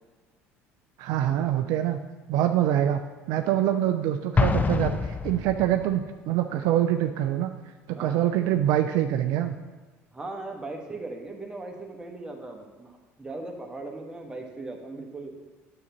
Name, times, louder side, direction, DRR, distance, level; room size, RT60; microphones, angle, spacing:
voice 1, 1.0-2.0 2.3-3.0 3.3-7.5 7.9-9.5, right 11 dB, 65° right, 6 dB, 0.4 m, -25 dB
Explosion, 4.4-5.9, left 4 dB, 20° left, 0.4 m, -25 dB
voice 2, 10.1-15.3, right 2 dB, 10° right, 1 dB, 1.4 m, -38 dB
9.5 x 6.9 x 2.9 m, 1.3 s
hypercardioid pair, 65°, 7 cm